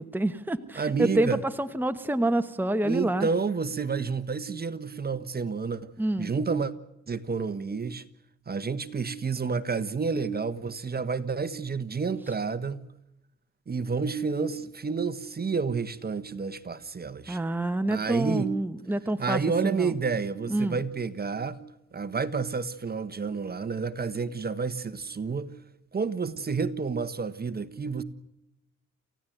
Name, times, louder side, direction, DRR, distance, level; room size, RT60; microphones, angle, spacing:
voice 1, 0.0-1.3 1.6-3.3 6.0-6.3 17.3-19.9 20.5-20.8, right 1 dB, 5° right, 1.2 m, -27 dB
voice 2, 0.7-1.4 2.8-5.9 6.2-6.7 7.1-8.0 8.5-12.8 13.7-17.4 17.9-18.6 19.2-21.6 21.9-25.5 25.9-28.0, right 5 dB, 30° right, 1.4 m, -30 dB
29.0 x 16.0 x 9.3 m
cardioid pair, 115°, 30 cm